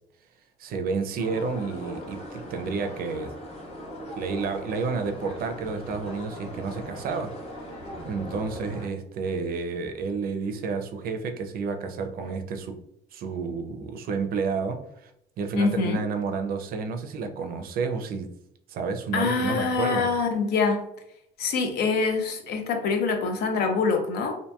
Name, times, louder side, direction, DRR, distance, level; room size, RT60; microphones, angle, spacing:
voice 1, 0.6-3.3 4.2-7.3 8.0-12.8 13.1-15.1 15.4-18.3 18.7-20.1, right 4 dB, 60° right, 6 dB, 0.4 m, -30 dB
sound 1, 1.2-8.9, equal, 35° left, 0.8 m, -39 dB
voice 2, 15.6-16.0 19.1-20.8 21.4-24.4, left 4 dB, 70° left, 4 dB, 0.6 m, -25 dB
2.8 x 2.6 x 2.2 m, 0.76 s
cardioid pair, 110°, 17 cm